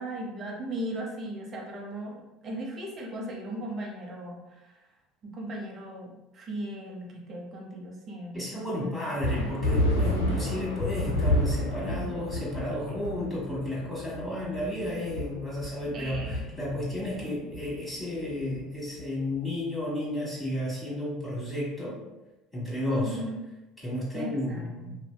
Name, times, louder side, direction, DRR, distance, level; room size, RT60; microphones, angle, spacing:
voice 1, 0.0-4.8 5.2-8.9 9.4-10.0 12.9-13.0 15.9-16.5 17.2-17.5 22.9-23.4 24.1-25.0, right 1 dB, 40° right, -1 dB, 0.7 m, -37 dB
voice 2, 8.3-22.0 22.5-23.2 23.8-25.0, left 1 dB, 5° left, -8 dB, 1.4 m, -32 dB
sound 1, 9.2-19.2, left 1 dB, 90° left, 0.5 m, -30 dB
2.7 x 2.1 x 2.2 m, 1.0 s
hypercardioid pair, 70°, 0 cm